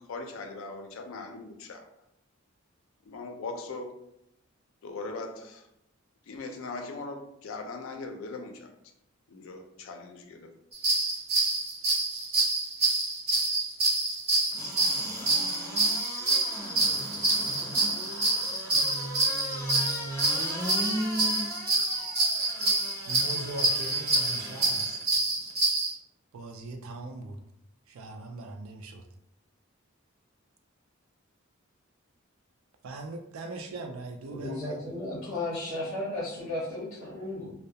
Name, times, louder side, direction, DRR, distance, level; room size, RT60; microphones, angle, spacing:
voice 1, 0.1-1.9 3.1-3.9 4.8-5.6 6.3-8.7 9.3-10.5, left 3 dB, 70° left, 4 dB, 0.4 m, -39 dB
sound 1, 10.7-25.9, right 2 dB, 50° right, 0.7 m, -27 dB
sound 2, 14.5-25.0 25.5-25.6, equal, 15° left, 0.4 m, -38 dB
voice 2, 23.1-25.0 26.3-27.4 27.9-29.0 32.8-34.8, right 2 dB, 80° right, 5 dB, 0.3 m, -40 dB
voice 3, 34.3-37.5, left 2 dB, 35° left, -8 dB, 0.8 m, -34 dB
2.2 x 2.1 x 2.7 m, 0.78 s
head